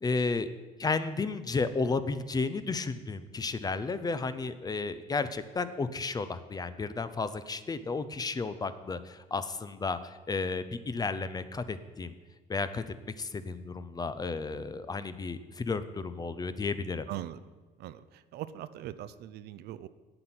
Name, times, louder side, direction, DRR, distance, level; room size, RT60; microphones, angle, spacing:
voice 1, 0.0-0.5 0.8-12.2 12.5-12.8 13.2-17.1, left 4 dB, 25° left, 13 dB, 0.6 m, -33 dB
voice 2, 17.1-17.4 17.8-19.9, right 13 dB, 70° right, 14 dB, 0.5 m, -41 dB
8.7 x 7.8 x 5.9 m, 1.3 s
cardioid pair, 110°, 17 cm